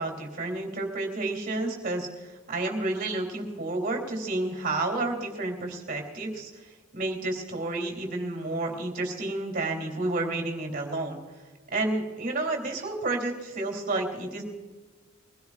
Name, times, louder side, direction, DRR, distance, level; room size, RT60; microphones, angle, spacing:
voice 1, 0.0-11.2 11.7-14.4, right 2 dB, 40° right, 2 dB, 3.2 m, -30 dB
24.0 x 16.5 x 2.5 m, 1.4 s
head